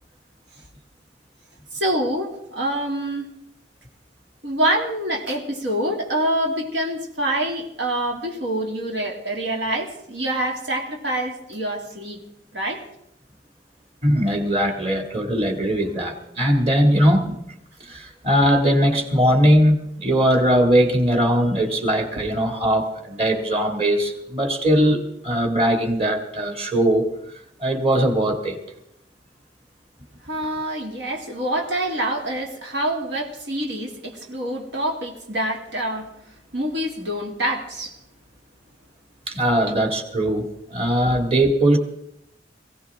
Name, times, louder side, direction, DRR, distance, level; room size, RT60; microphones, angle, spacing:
voice 1, 1.7-3.2 4.4-12.2 12.5-12.8 22.2-22.3 30.2-36.1 36.5-38.0, right 1 dB, 85° right, 1 dB, 2.8 m, -26 dB
voice 2, 14.0-17.4 17.8-27.1 27.6-28.6 39.3-41.8, equal, 35° right, 4 dB, 2.4 m, -20 dB
22.5 x 16.5 x 3.7 m, 0.81 s
head